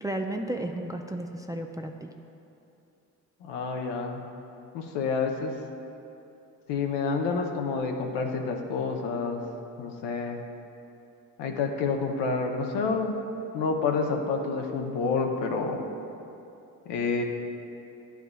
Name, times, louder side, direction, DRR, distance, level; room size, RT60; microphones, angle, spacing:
voice 1, 0.0-2.1, right 1 dB, 10° right, 3 dB, 0.4 m, -33 dB
voice 2, 3.4-4.3 4.7-5.5 6.7-9.4 9.8-10.4 11.4-13.1 13.5-15.9 16.9-17.2, left 4 dB, 70° left, 3 dB, 0.9 m, -28 dB
11.5 x 4.6 x 2.3 m, 2.7 s
hypercardioid pair, 50°, 44 cm